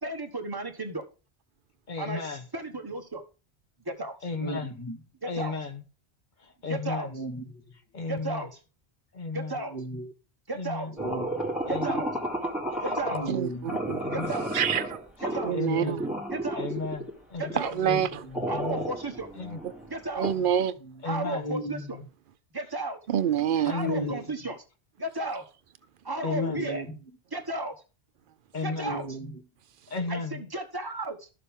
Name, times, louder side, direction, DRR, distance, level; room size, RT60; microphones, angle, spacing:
voice 1, 0.0-1.0 2.0-2.2 2.5-3.2 3.8-4.2 5.2-5.5 6.7-7.1 8.1-8.5 9.3-9.7 10.5-10.9 11.7-12.1 12.8-13.2 14.1-14.5 15.2-15.6 16.3-16.7 17.4-17.7 18.5-19.3 19.9-20.3 21.0-22.0 22.5-23.0 23.7-24.6 25.0-25.4 26.0-26.8 27.3-27.7 28.6-29.1 30.1-30.2 30.5-31.3, right 2 dB, 20° right, 1.3 m, -34 dB
voice 2, 1.9-2.5 4.2-4.8 5.3-5.8 6.4-7.2 7.9-8.5 9.1-9.6 10.5-10.9 11.7-12.0 12.7-13.4 14.0-14.4 15.2-16.0 16.6-17.6 18.5-18.9 19.3-19.6 21.0-21.5 23.6-24.1 26.2-26.6 28.5-28.9 29.9-30.5, left 4 dB, 50° left, 1.1 m, -34 dB
voice 3, 4.4-5.0 7.0-7.4 9.5-10.1 10.9-11.5 13.1-13.7 15.6-16.1 17.7-18.5 20.8-21.0 21.3-22.0 23.7-24.2 26.3-27.0 28.7-29.3, equal, 20° left, 1.4 m, -35 dB
sound 1, 11.0-13.4 13.7-15.6 16.0-17.1 17.4-20.3, right 1 dB, ahead, 2.1 m, -32 dB
voice 4, 13.3-14.0 14.5-15.0 15.4-16.0 17.6-18.1 20.2-20.7 23.1-23.7, right 9 dB, 60° right, 0.7 m, -26 dB
12.0 x 6.8 x 3.6 m
omnidirectional pair, 1.1 m